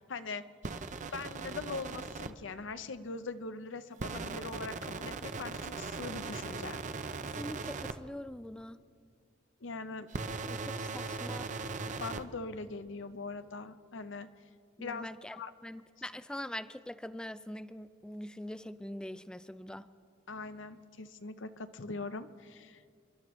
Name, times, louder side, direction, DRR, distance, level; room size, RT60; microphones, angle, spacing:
voice 1, 0.1-0.4 1.1-6.8 9.6-10.1 10.6-10.7 11.8-14.3 14.8-15.5 20.3-22.9, left 3 dB, 80° left, 11 dB, 0.7 m, -42 dB
sound 1, 0.6-2.3 4.0-7.9 10.1-12.2, right 4 dB, 40° right, 0.5 m, -39 dB
voice 2, 7.4-8.8 10.5-11.5 14.8-19.9, left 1 dB, 5° left, 13 dB, 0.3 m, -43 dB
28.5 x 12.0 x 3.1 m, 2.2 s
head